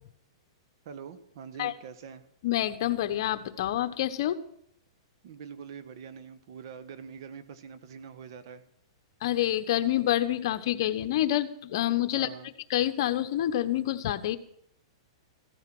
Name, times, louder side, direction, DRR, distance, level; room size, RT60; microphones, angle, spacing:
voice 1, 0.8-2.2 5.2-8.6 12.1-12.5, right 7 dB, 55° right, 11 dB, 1.4 m, -44 dB
voice 2, 2.4-4.4 9.2-14.4, left 13 dB, 55° left, 10 dB, 1.2 m, -27 dB
15.5 x 12.5 x 6.2 m, 0.69 s
hypercardioid pair, 145°, 3 cm